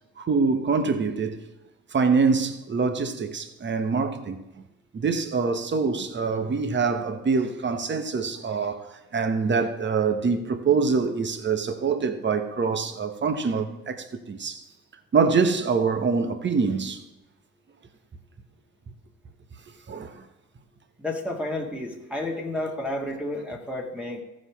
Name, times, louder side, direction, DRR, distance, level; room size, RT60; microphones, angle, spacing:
voice 1, 0.2-1.4 1.9-4.4 4.9-14.6 15.1-17.0 19.9-20.2, right 5 dB, 40° right, 1.2 m, -25 dB
voice 2, 21.0-24.2, left 1 dB, 5° right, 1.7 m, -31 dB
14.5 x 5.2 x 5.8 m
cardioid pair, 90°, 30 cm